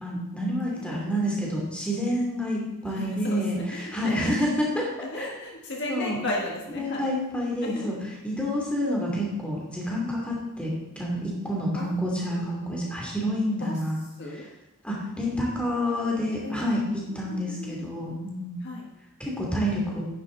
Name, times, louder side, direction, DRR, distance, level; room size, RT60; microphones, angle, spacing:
voice 1, 0.0-4.9 5.1-5.2 5.9-6.2 6.8-14.0 14.8-16.9 17.1-18.7 19.2-20.0, equal, 5° left, -3 dB, 2.7 m, -28 dB
voice 2, 0.7-1.6 2.9-4.3 5.0-7.1 7.6-7.9 11.7-13.2 13.5-13.8 14.2-14.5 16.4-16.6 17.1-17.9 18.6-18.9, left 1 dB, 50° left, -1 dB, 1.6 m, -36 dB
11.0 x 10.0 x 3.9 m, 0.95 s
head